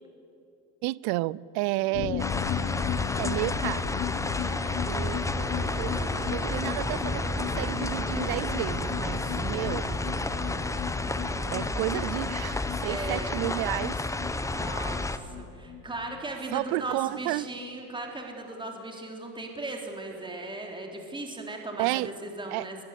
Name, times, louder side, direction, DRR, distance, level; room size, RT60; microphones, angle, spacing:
voice 1, 0.8-2.3 3.2-4.0 4.9-5.5 5.8-6.0 6.3-9.9 11.5-14.0 16.5-17.5 21.8-22.1 22.5-22.7, right 19 dB, 75° right, 0.7 m, -31 dB
sound 1, 1.9-17.3 17.6-17.7 18.0-18.1, left 13 dB, 55° left, 1.0 m, -37 dB
sound 2, 2.2-15.2, left 2 dB, 10° left, 0.9 m, -31 dB
voice 2, 4.4-5.3 9.3-9.8 11.9-12.1 12.8-13.4 14.4-22.8, right 2 dB, 15° right, 3.5 m, -38 dB
sound 3, 5.4-11.9, right 4 dB, 30° right, 1.8 m, -40 dB
24.0 x 21.0 x 8.3 m
cardioid pair, 130°, 37 cm